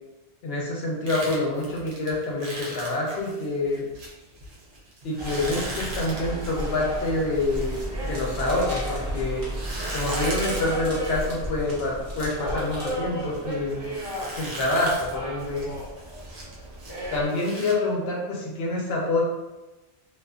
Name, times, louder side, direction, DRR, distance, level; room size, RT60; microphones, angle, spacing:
voice 1, 0.4-3.9 5.0-9.5 9.9-13.9 14.3-15.7 17.1-19.2, left 2 dB, 70° left, -3 dB, 0.9 m, -27 dB
sound 1, 1.1-9.0 9.5-17.7, right 1 dB, 85° right, 1.0 m, -39 dB
sound 2, 5.2-17.3, equal, 25° right, 0.8 m, -34 dB
sound 3, 7.4-13.0, equal, 50° right, 1.0 m, -38 dB
2.5 x 2.4 x 2.3 m, 1.1 s
omnidirectional pair, 1.1 m